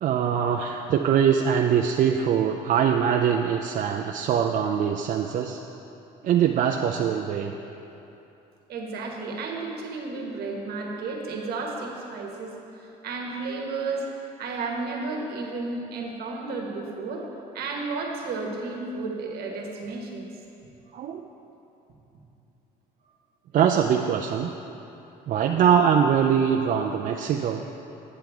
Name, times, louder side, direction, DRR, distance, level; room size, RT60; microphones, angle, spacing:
voice 1, 0.0-5.6 6.2-7.5 20.9-21.3 23.5-24.5 25.3-27.6, right 8 dB, 50° right, 2 dB, 0.4 m, -22 dB
voice 2, 8.7-12.5 12.8-14.1 14.4-17.3 17.5-20.3, right 3 dB, 65° right, 0 dB, 1.2 m, -32 dB
8.8 x 7.7 x 3.5 m, 2.9 s
cardioid pair, 110°, 17 cm